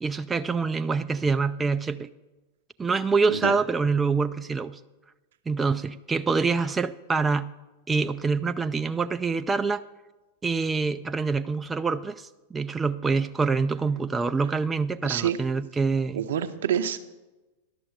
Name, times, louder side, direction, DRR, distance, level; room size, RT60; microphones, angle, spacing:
voice 1, 0.0-2.1 2.8-4.8 5.5-7.5 7.9-9.8 10.4-16.2, right 4 dB, 15° right, 10 dB, 0.3 m, -26 dB
voice 2, 15.0-15.4 16.1-17.0, right 9 dB, 65° right, 10 dB, 0.7 m, -27 dB
11.0 x 6.9 x 6.4 m, 1.1 s
figure-of-eight pair, 95°, 0 cm